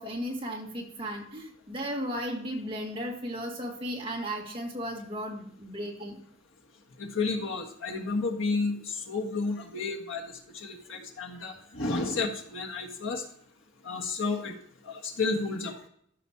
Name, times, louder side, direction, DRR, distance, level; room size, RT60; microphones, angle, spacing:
voice 1, 0.0-6.2, equal, 25° right, 0 dB, 2.0 m, -35 dB
voice 2, 7.0-10.2 10.5-13.2 13.8-14.5 14.8-15.7, left 3 dB, 80° left, 2 dB, 1.5 m, -31 dB
13.0 x 6.1 x 2.8 m, 0.65 s
head